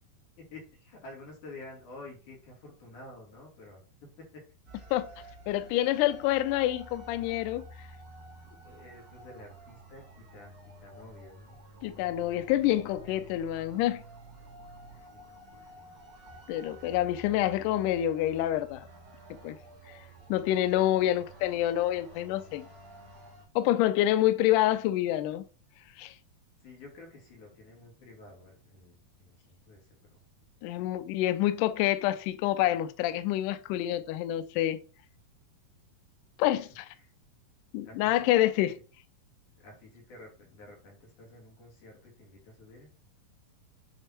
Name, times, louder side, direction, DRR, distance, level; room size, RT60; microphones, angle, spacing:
voice 1, 0.4-4.4 8.5-10.5 10.8-11.6 15.1-16.0 26.6-29.9 37.0-37.1 37.8-38.3 39.6-42.9, left 2 dB, 55° left, 3.9 m, -50 dB
sound 1, 4.7-23.4, right 1 dB, 40° right, 2.8 m, -51 dB
voice 2, 5.5-7.9 11.8-14.0 16.5-18.9 19.4-19.6 19.9-20.0 20.3-22.7 23.6-25.4 26.0-26.2 30.6-34.8 36.4-36.9 37.7-38.8, left 13 dB, 85° left, 1.8 m, -27 dB
9.0 x 3.4 x 4.4 m
omnidirectional pair, 4.2 m